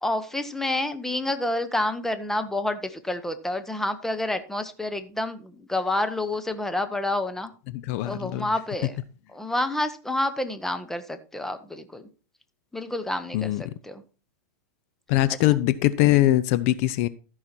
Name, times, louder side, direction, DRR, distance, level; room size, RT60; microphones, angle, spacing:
voice 1, 0.0-7.5 8.0-9.0 9.3-12.0 12.7-14.0 15.2-15.6, left 1 dB, 5° left, 9 dB, 1.1 m, -29 dB
voice 2, 7.9-8.9 13.3-13.6 15.1-17.1, left 15 dB, 55° left, 15 dB, 0.6 m, -22 dB
13.5 x 5.7 x 4.5 m, 0.36 s
hypercardioid pair, 110°, 10 cm